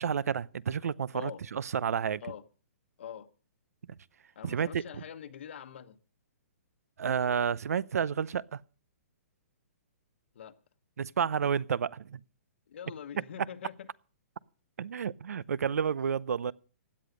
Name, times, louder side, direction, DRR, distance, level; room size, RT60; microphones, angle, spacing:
voice 1, 0.0-2.2 4.4-4.8 7.0-8.6 11.0-12.2 14.8-16.5, right 7 dB, 85° right, 0.7 m, -30 dB
voice 2, 4.3-6.0 10.3-10.5 12.7-13.9, left 8 dB, 50° left, 1.1 m, -44 dB
16.0 x 10.5 x 5.1 m
hypercardioid pair, 175°, 8 cm